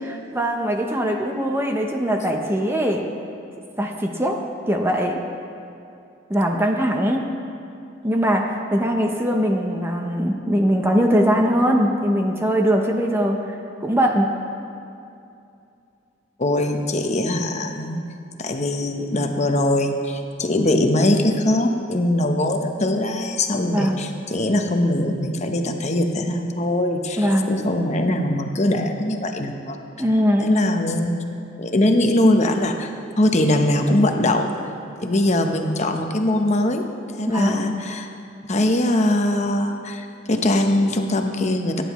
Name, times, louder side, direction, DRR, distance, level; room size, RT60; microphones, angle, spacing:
voice 1, 0.1-3.0 3.8-4.4 4.7-5.2 6.3-7.3 8.0-13.5 13.8-14.3 23.7-24.0 27.2-27.5 30.0-30.5 37.3-37.7, equal, 10° right, 2 dB, 0.7 m, -21 dB
voice 2, 16.4-18.0 18.4-29.8 30.4-31.2 31.6-32.9 33.2-34.5 35.0-36.8 37.2-38.1 38.5-41.8, left 1 dB, 35° left, 5 dB, 0.8 m, -21 dB
21.0 x 10.0 x 3.1 m, 2.6 s
head